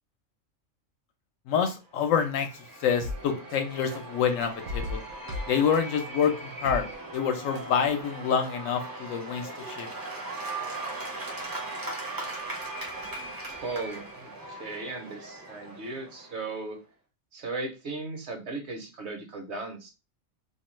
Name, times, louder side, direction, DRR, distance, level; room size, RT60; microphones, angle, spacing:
voice 1, 1.5-5.0 5.5-6.8 7.1-9.9, left 7 dB, 80° left, 6 dB, 1.0 m, -27 dB
Cheering / Applause / Crowd, 1.9-16.6, right 2 dB, 25° right, 0.4 m, -39 dB
sound 1, 3.0-8.0, left 1 dB, 90° right, 1.0 m, -39 dB
voice 2, 13.4-16.8 17.3-19.9, right 3 dB, 60° right, 3 dB, 0.9 m, -37 dB
2.6 x 2.2 x 3.0 m, 0.30 s
omnidirectional pair, 1.4 m